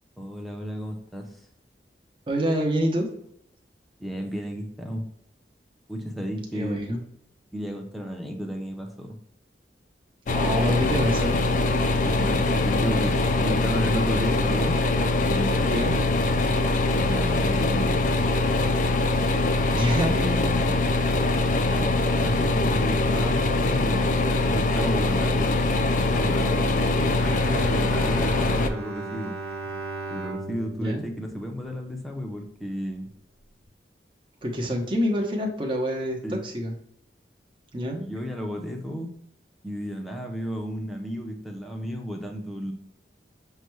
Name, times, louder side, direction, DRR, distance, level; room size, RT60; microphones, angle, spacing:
voice 1, 0.2-1.3 4.0-5.1 5.9-6.9 7.5-9.2 12.1-14.8 15.3-16.0 17.0-18.0 19.4-20.8 21.7-24.1 24.5-25.6 26.1-29.3 30.1-33.1 36.2-36.4 38.0-39.1 39.6-42.7, equal, ahead, 1 dB, 0.6 m, -33 dB
voice 2, 2.3-3.1 6.5-7.0 10.3-11.4 15.7-16.0 19.7-20.1 30.8-31.0 34.4-36.7 37.7-38.0, equal, 30° right, 0 dB, 0.8 m, -26 dB
sound 1, 10.3-28.7, left 2 dB, 45° left, 0.4 m, -23 dB
Bowed string instrument, 27.0-32.2, right 2 dB, 85° right, 1.1 m, -37 dB
6.5 x 2.3 x 3.1 m, 0.73 s
head